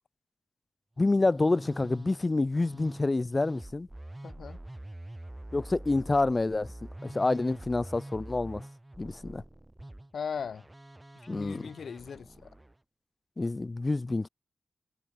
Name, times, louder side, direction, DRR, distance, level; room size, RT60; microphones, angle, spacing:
voice 1, 1.0-3.9 5.5-6.7 7.0-8.6 9.0-9.4 11.3-11.7 13.4-14.3, left 2 dB, 30° left, 0.6 m, -28 dB
Musical instrument, 1.0-12.8, right 1 dB, 15° right, 2.8 m, -46 dB
voice 2, 4.2-4.6 10.1-10.6 11.3-12.5, left 6 dB, 75° left, 1.9 m, -38 dB
wide cardioid pair, 100°, 0 cm